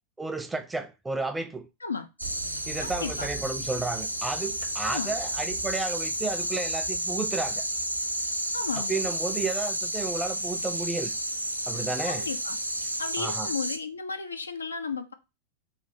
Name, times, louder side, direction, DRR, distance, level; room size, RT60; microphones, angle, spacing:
voice 1, 0.2-1.7 2.7-7.6 8.8-11.1 11.7-12.3 13.2-13.5, right 3 dB, 10° right, 0.4 m, -32 dB
sound 1, 2.2-13.2, right 4 dB, 60° right, 0.8 m, -46 dB
sound 2, 2.2-13.8, right 1 dB, 90° right, 0.4 m, -31 dB
voice 2, 2.8-3.3 4.8-5.1 8.5-9.1 12.1-12.6 13.0-15.1, left 5 dB, 75° left, 0.4 m, -34 dB
3.2 x 2.3 x 4.0 m
figure-of-eight pair, 90°, 0 cm